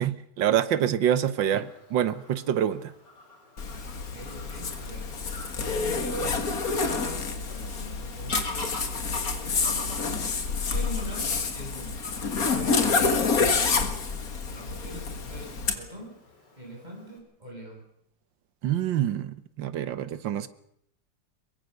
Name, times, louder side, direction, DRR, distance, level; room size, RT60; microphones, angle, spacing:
voice 1, 0.0-2.9 18.6-20.5, right 10 dB, 80° right, 1.8 m, -26 dB
Fowl / Bird vocalization bird call bird song, 1.4-17.2, left 2 dB, 65° left, 5.1 m, -45 dB
Zipper (clothing), 3.6-15.7, left 4 dB, 50° left, 2.2 m, -28 dB
voice 2, 3.7-5.1 5.6-14.0 14.5-16.2 16.6-17.8, right 1 dB, 20° right, 7.7 m, -42 dB
23.0 x 22.0 x 6.6 m
omnidirectional pair, 2.0 m